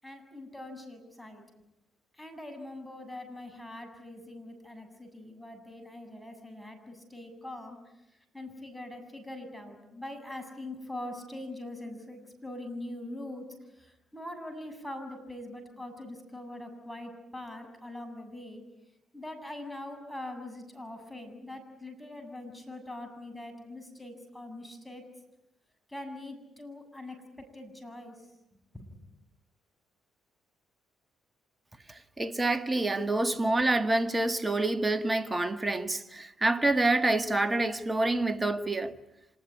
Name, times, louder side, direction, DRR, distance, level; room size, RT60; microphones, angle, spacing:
voice 1, 0.0-1.4 2.1-7.8 8.3-13.5 13.7-18.6 19.1-25.0 25.9-28.2 28.5-29.0, left 1 dB, 5° left, 7.6 m, -43 dB
voice 2, 31.9-39.0, right 2 dB, 25° right, 1.9 m, -27 dB
26.0 x 20.0 x 9.7 m
hypercardioid pair, 45°, 0 cm